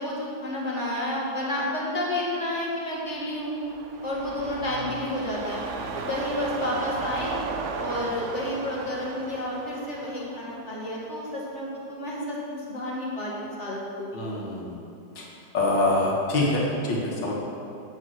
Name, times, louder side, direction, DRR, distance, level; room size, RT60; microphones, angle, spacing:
voice 1, 0.0-3.5 4.0-5.6 6.0-7.4 7.8-14.2, left 1 dB, 40° left, -4 dB, 1.9 m, -30 dB
sound 1, 3.2-11.6 12.0-12.1, right 4 dB, 60° right, 0.8 m, -36 dB
voice 2, 14.1-14.8 15.2-15.3 15.5-17.3, left 2 dB, 75° left, -3 dB, 2.2 m, -25 dB
8.7 x 6.6 x 6.2 m, 2.6 s
omnidirectional pair, 1.9 m